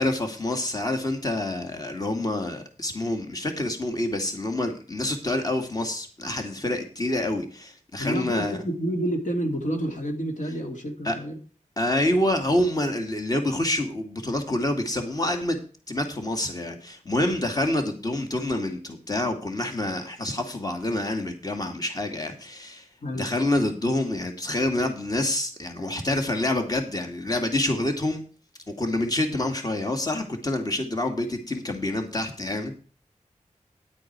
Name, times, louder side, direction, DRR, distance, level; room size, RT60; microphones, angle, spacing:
voice 1, 0.0-8.6 11.0-11.2 11.8-15.6 15.9-22.9 23.1-28.2 28.8-32.8, left 1 dB, 30° left, 5 dB, 2.3 m, -27 dB
voice 2, 8.0-11.4 23.0-23.3, right 1 dB, 75° left, 3 dB, 2.8 m, -29 dB
11.0 x 8.5 x 4.7 m, 0.39 s
wide cardioid pair, 60°, 13 cm